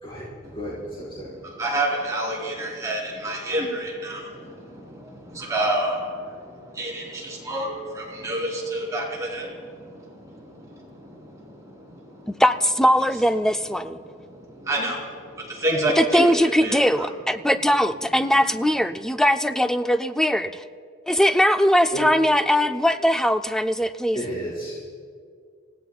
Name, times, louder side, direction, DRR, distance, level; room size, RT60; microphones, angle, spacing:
voice 1, 0.0-1.3 21.9-22.0 24.1-24.9, equal, 30° left, -9 dB, 4.7 m, -32 dB
voice 2, 1.2-12.4 14.0-16.8, right 1 dB, 20° right, -4 dB, 3.4 m, -29 dB
voice 3, 12.4-14.0 16.0-20.6 21.1-24.2, equal, 5° left, 9 dB, 0.4 m, -20 dB
29.5 x 16.5 x 2.3 m, 2.1 s
head